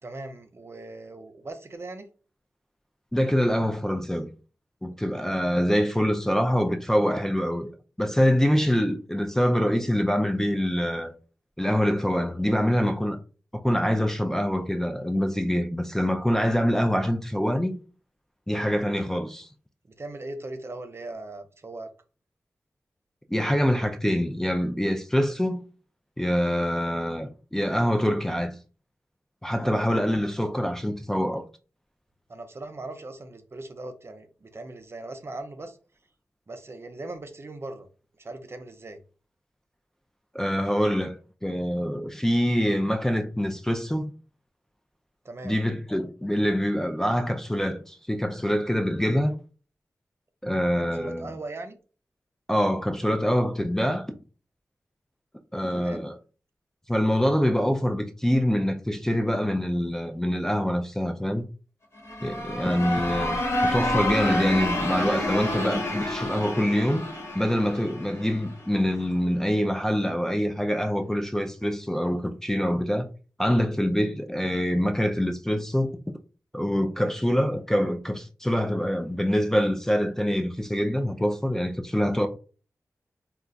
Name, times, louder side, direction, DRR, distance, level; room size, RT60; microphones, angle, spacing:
voice 1, 0.0-2.1 19.9-21.9 29.6-29.8 32.3-35.8 36.5-37.9 38.2-39.0 45.2-45.6 51.0-51.8 55.7-56.0, right 2 dB, 45° right, 0.5 m, -39 dB
voice 2, 3.1-4.3 4.8-7.7 8.0-11.1 11.6-13.2 13.6-17.8 18.5-19.5 23.3-25.6 26.2-28.6 29.4-31.4 40.3-44.1 45.4-49.3 50.4-51.4 52.5-54.2 55.5-56.1 56.9-61.4 62.2-63.4 63.7-67.1 67.3-73.1 73.4-76.0 76.5-82.3, equal, 5° left, 0.3 m, -25 dB
sound 1, 62.0-68.7, left 1 dB, 50° left, 1.0 m, -29 dB
2.3 x 2.2 x 3.8 m
wide cardioid pair, 70°, 6 cm